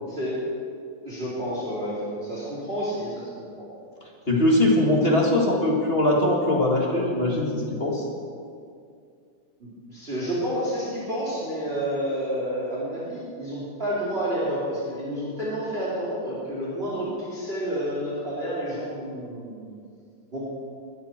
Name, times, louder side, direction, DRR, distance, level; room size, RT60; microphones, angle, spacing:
voice 1, 1.0-3.3 3.6-3.7 9.6-19.7 20.3-20.4, equal, 25° right, -7 dB, 3.3 m, -30 dB
voice 2, 4.3-8.1, left 1 dB, 30° left, -2 dB, 2.0 m, -21 dB
20.0 x 13.5 x 4.4 m, 2.3 s
omnidirectional pair, 2.3 m